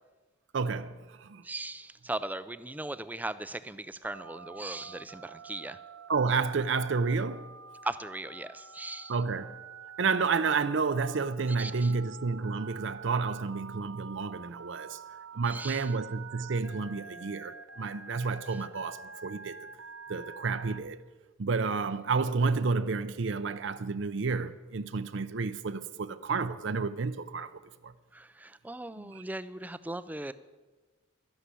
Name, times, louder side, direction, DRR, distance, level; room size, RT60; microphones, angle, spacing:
voice 1, 0.5-1.4 6.1-7.5 9.1-9.6 10.0-15.0 15.3-19.5 20.1-21.0 21.4-27.9 29.0-29.2, right 4 dB, 60° right, 0.5 m, -30 dB
voice 2, 1.4-5.8 7.8-9.1 11.6-11.9 15.5-15.9 28.1-30.3, right 2 dB, 10° right, 0.4 m, -38 dB
Telephone, 4.0-20.8, right 5 dB, 75° right, 1.2 m, -47 dB
12.5 x 11.5 x 8.2 m
head